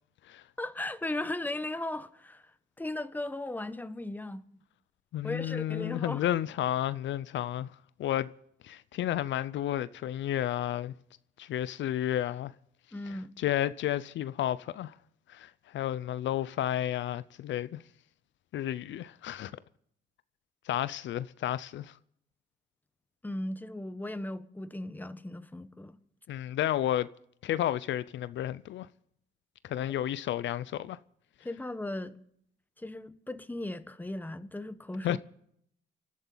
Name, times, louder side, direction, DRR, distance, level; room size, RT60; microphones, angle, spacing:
voice 1, 0.6-2.4 2.8-4.4 5.2-6.2 12.9-13.3 23.2-26.0 31.4-32.2 32.8-35.2, left 1 dB, 10° left, 1.1 m, -37 dB
voice 2, 5.1-7.7 8.0-8.3 8.6-10.9 11.4-12.5 13.1-14.9 15.3-17.8 18.5-19.5 20.7-21.9 26.3-27.1 27.4-28.9 29.6-31.0 35.0-35.2, left 12 dB, 70° left, 0.5 m, -32 dB
28.0 x 12.0 x 4.0 m
cardioid pair, 90°, 20 cm